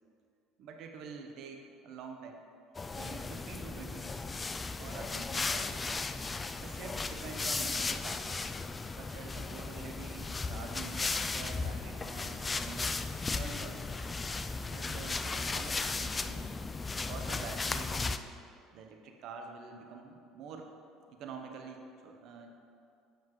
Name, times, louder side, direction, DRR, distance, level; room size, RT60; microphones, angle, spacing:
voice 1, 0.6-2.4 3.0-4.3 4.8-6.0 6.6-8.4 9.0-13.0 13.3-14.0 14.7-16.5 17.0-18.4 18.7-20.7 21.1-22.5, right 5 dB, 65° right, 4 dB, 0.9 m, -47 dB
sound 1, 2.7-18.2, left 3 dB, 25° left, 0.3 m, -36 dB
7.7 x 7.1 x 3.1 m, 2.4 s
supercardioid pair, 90°, 0 cm